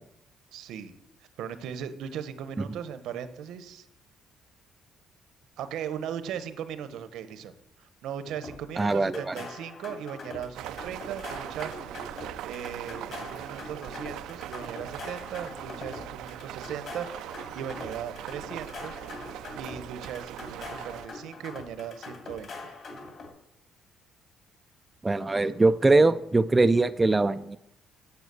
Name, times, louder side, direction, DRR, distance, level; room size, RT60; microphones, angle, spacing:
voice 1, 0.5-1.0 1.4-3.9 5.6-7.5 7.8-11.7 12.4-19.0 19.6-22.7, right 8 dB, 70° right, 12 dB, 0.9 m, -38 dB
sound 1, 8.4-23.3, left 3 dB, 45° left, 2.5 m, -43 dB
voice 2, 8.8-9.3 25.0-27.6, right 3 dB, 15° right, 10 dB, 0.3 m, -22 dB
sound 2, 10.5-21.1, right 12 dB, 90° right, 0.5 m, -40 dB
9.3 x 7.1 x 6.8 m, 0.79 s
cardioid pair, 160°, 0 cm